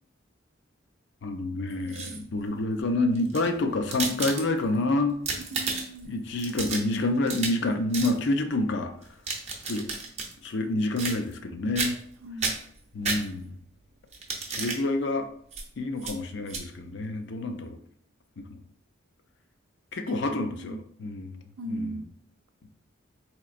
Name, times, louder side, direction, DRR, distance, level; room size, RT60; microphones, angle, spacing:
voice 1, 1.2-5.2 6.1-8.9 9.7-9.9 10.4-12.0 12.9-13.6 14.5-15.3 15.8-17.8 18.4-18.6 19.9-21.4 21.7-22.0, left 2 dB, 55° left, 6 dB, 0.4 m, -28 dB
sound 1, 1.7-2.4 3.1-4.8 5.1-6.0 6.4-7.7 7.9-8.2 9.0-10.3 11.0-11.5 11.8-12.1 12.4-13.6 14.1-14.8 15.5-15.6 16.0-16.1 16.5-16.6, right 4 dB, 30° right, 0.6 m, -33 dB
voice 2, 5.4-6.2 12.2-12.6 20.1-20.8 21.6-22.1, right 1 dB, 90° right, 7 dB, 0.5 m, -38 dB
4.1 x 2.9 x 2.4 m, 0.63 s
head